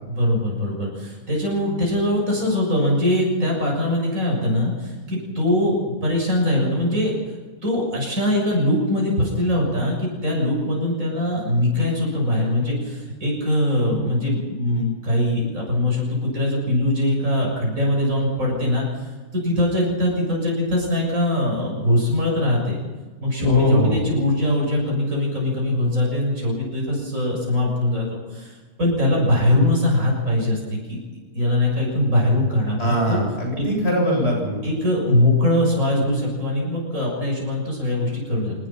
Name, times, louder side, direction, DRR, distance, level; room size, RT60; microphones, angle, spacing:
voice 1, 0.1-7.1 7.6-18.9 19.3-22.8 23.2-28.5 28.8-31.0 31.3-32.8 33.1-33.2 33.6-33.7 34.6-38.5, left 1 dB, 65° right, -2 dB, 7.1 m, -22 dB
voice 2, 23.4-23.9 32.8-34.6, left 1 dB, 45° left, 0 dB, 8.1 m, -21 dB
24.5 x 20.0 x 5.9 m, 1.3 s
omnidirectional pair, 1.5 m